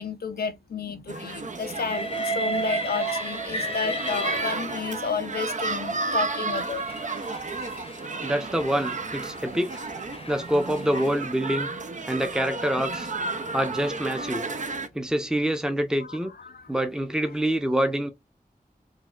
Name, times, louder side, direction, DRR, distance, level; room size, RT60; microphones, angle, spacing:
voice 1, 0.0-6.8 10.9-11.0 11.7-11.8 16.0-16.7, left 6 dB, 80° left, 0.4 m, -32 dB
sound 1, 1.1-14.9, right 3 dB, 55° right, 0.5 m, -32 dB
Train, 1.7-5.1 6.0-11.2, right 1 dB, 40° left, 0.6 m, -34 dB
voice 2, 8.2-9.7 10.3-11.7 12.1-13.1 13.5-14.4 14.9-16.3 16.7-18.1, right 1 dB, 5° right, 0.6 m, -26 dB
4.0 x 2.3 x 2.4 m
wide cardioid pair, 45°, 16 cm